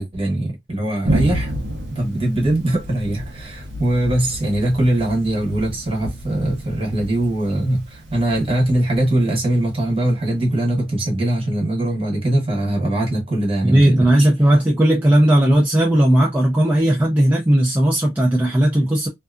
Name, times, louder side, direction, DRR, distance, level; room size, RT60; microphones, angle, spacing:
voice 1, 0.0-1.5 1.9-14.3, right 1 dB, 30° right, 0.9 m, -21 dB
Thunder, 1.0-10.5, right 1 dB, 70° right, 0.8 m, -30 dB
voice 2, 13.6-19.1, right 1 dB, 10° right, 0.4 m, -16 dB
2.6 x 2.4 x 2.3 m
head